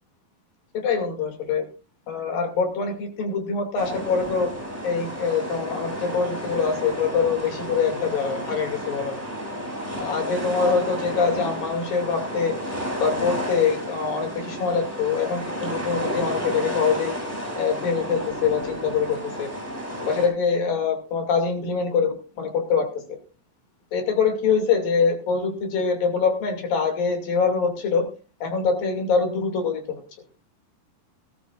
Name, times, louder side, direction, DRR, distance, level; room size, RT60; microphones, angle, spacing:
voice 1, 0.7-1.7 2.1-4.5 4.8-9.2 10.0-12.6 13.0-17.2 17.6-19.5 20.1-23.0 23.9-28.1 28.4-30.0, left 5 dB, 85° left, 4 dB, 4.3 m, -24 dB
sound 1, 3.8-20.3, equal, 5° left, 6.9 m, -32 dB
19.0 x 13.0 x 2.5 m, 0.34 s
omnidirectional pair, 3.9 m